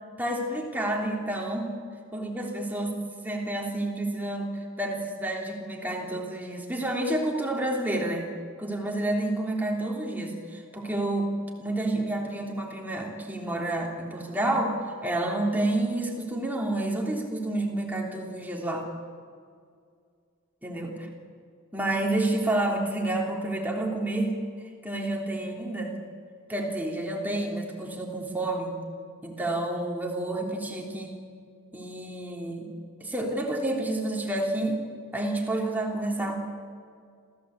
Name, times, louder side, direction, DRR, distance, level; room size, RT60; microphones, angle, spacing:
voice 1, 0.2-1.7 2.1-4.5 4.8-8.3 8.6-11.3 11.6-14.8 15.0-18.9 20.6-21.1 21.7-24.4 24.8-26.0 26.5-28.8 29.2-31.2 31.7-32.7 33.0-34.8 35.1-36.4, right 1 dB, 10° right, -1 dB, 3.3 m, -29 dB
27.0 x 15.5 x 8.3 m, 2.2 s
head